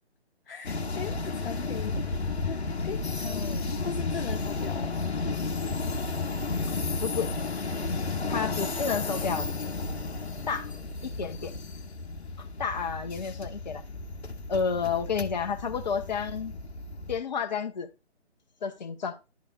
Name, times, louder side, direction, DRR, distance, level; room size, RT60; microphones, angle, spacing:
voice 1, 0.5-2.0 2.4-4.9 8.2-8.5, left 6 dB, 55° left, 0.7 m, -39 dB
sound 1, 0.6-17.2, left 3 dB, 70° left, 1.2 m, -33 dB
voice 2, 3.2-3.8 7.0-7.3 8.3-9.5 10.5-10.7 11.0-11.5 12.4-13.8 14.5-16.6 17.1-17.9 18.6-19.2, left 6 dB, 40° left, 1.1 m, -31 dB
11.5 x 5.2 x 2.4 m
figure-of-eight pair, 140°, 33 cm